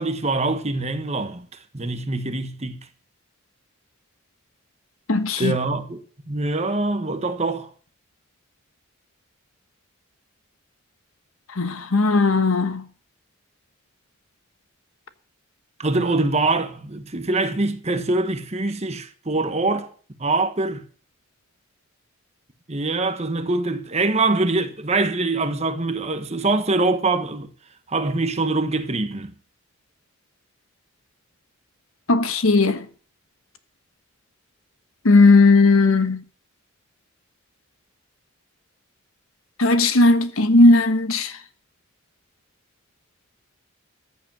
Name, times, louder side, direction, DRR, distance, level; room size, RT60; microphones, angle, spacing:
voice 1, 0.0-1.5 1.7-2.8 5.4-6.0 6.3-7.7 15.8-19.9 20.2-20.8 22.7-27.5 27.9-29.3, right 3 dB, 30° right, 1.2 m, -24 dB
voice 2, 5.1-5.5 11.6-12.8 32.1-32.8 35.0-36.2 39.6-41.3, left 3 dB, 85° left, 1.3 m, -16 dB
14.0 x 7.8 x 7.4 m
head